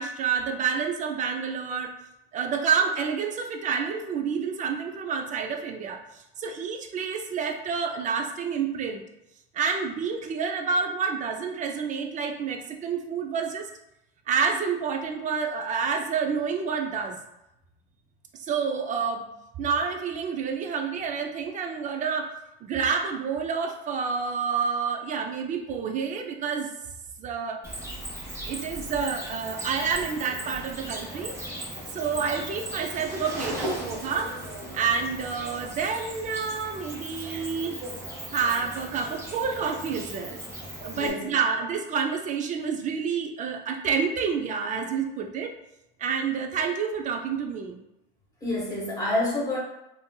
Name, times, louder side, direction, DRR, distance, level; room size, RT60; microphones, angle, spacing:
voice 1, 0.0-1.9 2.3-9.0 9.5-13.7 14.3-17.2 18.4-19.2 19.6-22.3 22.6-26.7 27.2-27.6 28.5-31.4 31.9-34.3 34.7-37.8 38.3-40.4 40.8-45.5 46.0-47.9, right 6 dB, 25° right, 3 dB, 0.4 m, -28 dB
Cricket, 27.6-41.1, right 1 dB, 10° right, 1.0 m, -37 dB
voice 2, 40.9-41.2 48.4-49.6, left 2 dB, 10° left, -4 dB, 1.3 m, -27 dB
3.6 x 2.6 x 2.2 m, 0.89 s
supercardioid pair, 115°, 29 cm